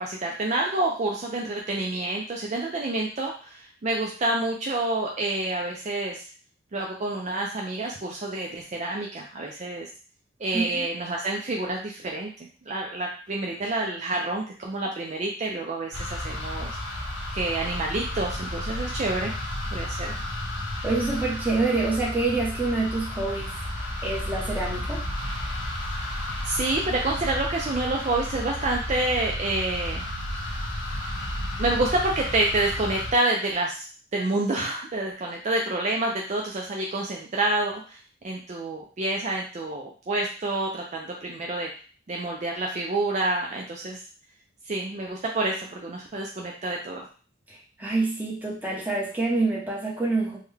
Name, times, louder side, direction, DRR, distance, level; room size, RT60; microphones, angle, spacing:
voice 1, 0.0-6.3 6.7-9.9 10.4-12.3 12.7-16.8 17.3-19.3 19.7-20.1 26.4-30.1 31.6-33.9 34.1-38.0 38.2-41.7 42.1-44.0 44.7-47.0, right 2 dB, 35° right, -1 dB, 0.4 m, -28 dB
voice 2, 10.5-10.8 20.8-23.5 24.0-25.0 47.5-50.4, right 3 dB, 10° right, -4 dB, 0.8 m, -27 dB
sound 1, 15.9-33.1, left 1 dB, 75° left, 1.3 m, -32 dB
3.6 x 2.2 x 3.4 m, 0.39 s
head